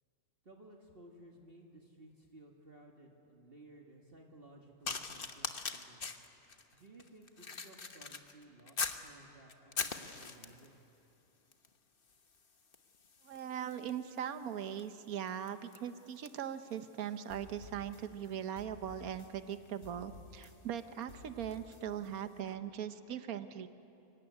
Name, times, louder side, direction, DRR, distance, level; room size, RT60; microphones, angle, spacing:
voice 1, 0.4-6.0 6.7-10.7, right 1 dB, 40° right, 0 dB, 2.1 m, -57 dB
sound 1, 4.8-9.1 9.5-10.7 11.5-11.8 12.0-21.7 22.4-22.6, left 5 dB, 40° left, 1.3 m, -44 dB
voice 2, 13.2-23.7, right 9 dB, 85° right, 10 dB, 1.4 m, -40 dB
sound 2, 17.3-19.6 19.8-22.1, left 3 dB, 70° left, 4.0 m, -54 dB
25.0 x 22.5 x 9.9 m, 2.8 s
omnidirectional pair, 1.5 m